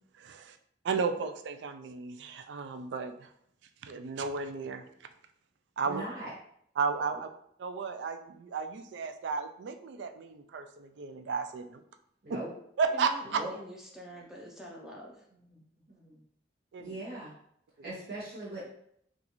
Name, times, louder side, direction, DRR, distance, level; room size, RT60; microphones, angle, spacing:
voice 1, 0.2-0.6 0.8-3.3 3.8-4.8 5.8-6.0 6.8-7.3 7.6-11.8 12.3-12.4 12.8-13.4 16.7-16.9 17.8-17.9, right 5 dB, 80° right, 8 dB, 0.3 m, -33 dB
voice 2, 5.8-6.3 12.2-12.5 13.3-13.5 15.3-15.6 15.9-16.2 16.8-17.3 17.8-18.7, right 2 dB, 55° right, -8 dB, 1.0 m, -40 dB
voice 3, 12.9-15.3, equal, 5° right, -3 dB, 0.4 m, -46 dB
3.9 x 2.4 x 2.9 m, 0.68 s
head